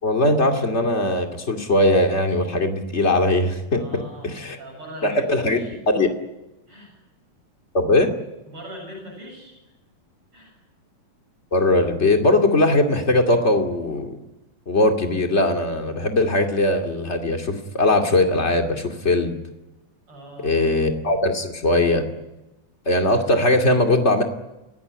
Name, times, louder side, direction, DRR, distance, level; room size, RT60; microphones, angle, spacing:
voice 1, 0.0-4.6 5.0-5.6 5.9-6.1 7.7-8.1 11.5-14.2 14.7-19.3 20.4-22.0 22.9-24.2, left 1 dB, 25° left, 4 dB, 2.4 m, -20 dB
voice 2, 3.7-5.7 6.7-6.9 8.4-9.6 10.3-10.6 20.1-20.6, equal, 45° right, 0 dB, 8.6 m, -40 dB
29.5 x 16.5 x 10.0 m, 1.0 s
omnidirectional pair, 3.5 m